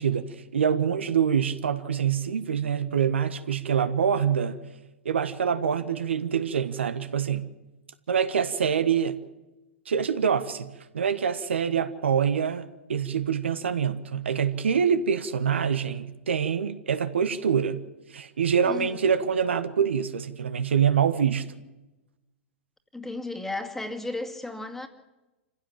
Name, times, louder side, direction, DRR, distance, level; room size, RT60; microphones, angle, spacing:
voice 1, 0.0-4.6 5.0-7.5 8.1-9.2 9.9-17.8 18.1-21.5, right 7 dB, 70° right, 1.4 m, -25 dB
voice 2, 18.6-19.0 22.9-24.9, left 2 dB, 5° left, 2.2 m, -34 dB
26.5 x 15.5 x 7.5 m
figure-of-eight pair, 105°, 7 cm